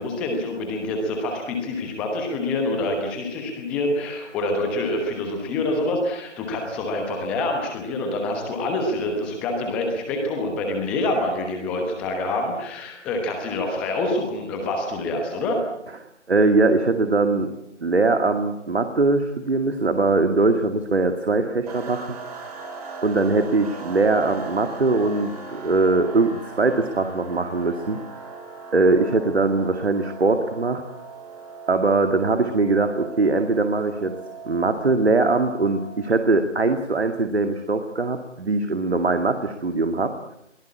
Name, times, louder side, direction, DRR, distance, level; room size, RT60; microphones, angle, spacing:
voice 1, 0.0-15.6, left 2 dB, 5° left, 2 dB, 1.0 m, -26 dB
voice 2, 16.3-17.5 17.8-22.2 23.0-28.0 28.7-30.8 31.7-34.1 34.4-40.4, right 3 dB, 60° right, 7 dB, 2.3 m, -21 dB
sound 1, 21.7-36.2, right 4 dB, 30° right, 6.2 m, -39 dB
23.0 x 18.0 x 9.7 m, 0.82 s
figure-of-eight pair, 155°, 37 cm